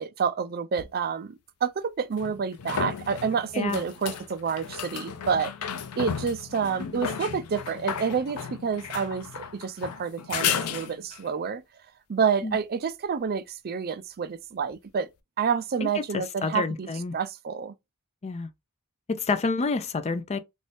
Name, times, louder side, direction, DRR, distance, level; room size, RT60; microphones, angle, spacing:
voice 1, 0.0-1.3 1.6-5.5 6.0-11.6 12.1-15.1 15.4-16.9 17.1-17.7, right 6 dB, 45° right, 0.4 m, -28 dB
sound 1, 0.8-0.9 2.2-11.3 14.7-14.8, left 7 dB, 90° left, 0.5 m, -34 dB
voice 2, 16.4-17.1 18.2-18.5 19.1-20.4, left 4 dB, 30° left, 0.4 m, -28 dB
3.1 x 2.7 x 3.3 m
head